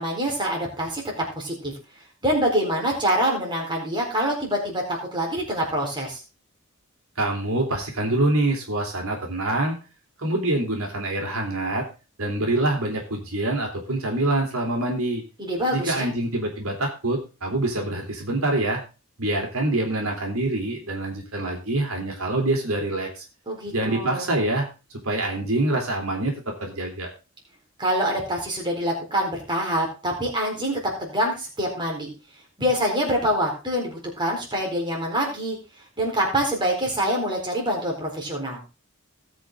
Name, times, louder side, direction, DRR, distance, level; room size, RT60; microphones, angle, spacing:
voice 1, 0.0-1.7 2.2-6.2 15.4-16.1 23.5-24.3 27.8-32.1 32.6-35.6 36.0-38.6, equal, 20° right, -1 dB, 4.3 m, -25 dB
voice 2, 7.2-9.8 10.2-11.8 12.2-15.2 15.7-18.8 19.2-23.2 23.7-24.7 25.0-27.1, right 2 dB, 85° right, 1 dB, 3.6 m, -25 dB
18.5 x 6.2 x 3.8 m, 0.32 s
head